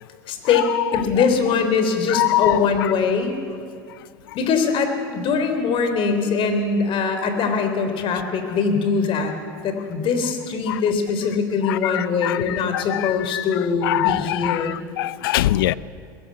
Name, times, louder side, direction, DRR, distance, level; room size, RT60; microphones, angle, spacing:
voice 1, 0.3-3.4 4.3-9.3 9.6-14.8, left 5 dB, 50° left, 7 dB, 3.5 m, -22 dB
voice 2, 2.1-2.6 10.7-10.8 11.7-13.4 13.8-15.7, left 15 dB, 85° left, 19 dB, 0.6 m, -23 dB
21.5 x 15.0 x 9.6 m, 2.5 s
supercardioid pair, 105°, 11 cm